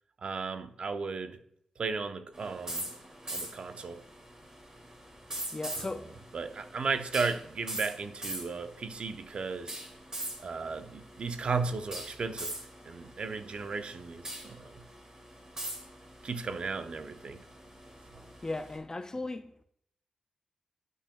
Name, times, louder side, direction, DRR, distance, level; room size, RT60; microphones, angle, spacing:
voice 1, 0.2-1.4 1.8-2.9 3.3-4.0 5.7-5.9 6.3-9.8 10.4-12.6 12.8-14.8 16.2-17.4 18.1-18.2, right 4 dB, 65° right, 0.8 m, -35 dB
sound 1, 2.3-18.8, right 1 dB, 30° right, 2.6 m, -43 dB
voice 2, 5.5-6.2 18.4-19.5, left 2 dB, 30° left, 0.6 m, -36 dB
11.0 x 6.0 x 2.3 m
supercardioid pair, 45°, 2 cm